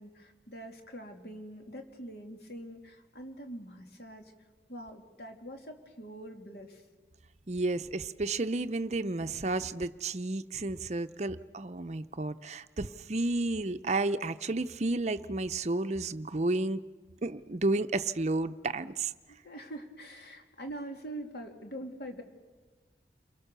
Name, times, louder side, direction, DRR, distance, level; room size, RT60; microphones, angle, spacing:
voice 1, 0.0-4.3 4.7-6.8 19.3-22.2, right 1 dB, 60° left, 4 dB, 2.7 m, -44 dB
voice 2, 7.5-16.8 17.2-19.1, right 2 dB, 40° right, 11 dB, 0.6 m, -32 dB
29.5 x 23.0 x 6.8 m, 1.4 s
head